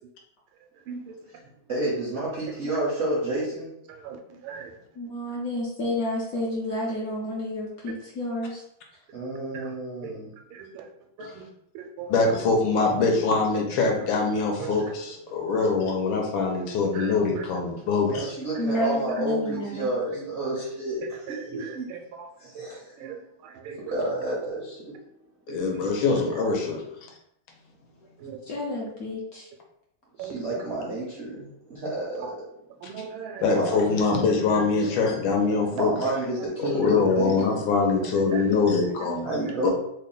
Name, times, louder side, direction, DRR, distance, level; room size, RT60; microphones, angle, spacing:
voice 1, 1.7-3.7 9.1-10.3 18.0-21.0 21.7-21.8 22.4-22.8 23.9-25.0 30.2-32.4 33.5-33.7 35.7-37.5 39.2-39.7, right 2 dB, 60° right, -7 dB, 0.7 m, -30 dB
voice 2, 2.5-2.8 3.9-4.8 9.5-9.7 10.0-10.2 10.5-10.9 11.2-11.5 11.7-12.3 13.8-13.9 14.6-14.9 16.8-17.5 18.0-18.3 18.5-18.6 19.1-19.3 19.5-19.6 20.1-20.4 21.0-22.7 23.0-24.0 25.5-25.9 26.2-26.3 28.2-28.4 30.2-30.6 32.1-32.4 32.8-34.1 34.5-35.0 35.4-35.7 36.1-36.5 36.8-37.1 38.1-39.6, right 6 dB, 85° right, 3 dB, 1.4 m, -40 dB
voice 3, 5.0-8.6 12.3-12.4 18.6-19.9 28.5-29.5, left 1 dB, 65° left, -4 dB, 0.9 m, -30 dB
voice 4, 12.1-18.3 25.5-26.8 33.4-35.9 36.6-39.7, left 4 dB, 80° left, 1 dB, 1.5 m, -23 dB
3.5 x 2.2 x 3.8 m, 0.77 s
omnidirectional pair, 2.2 m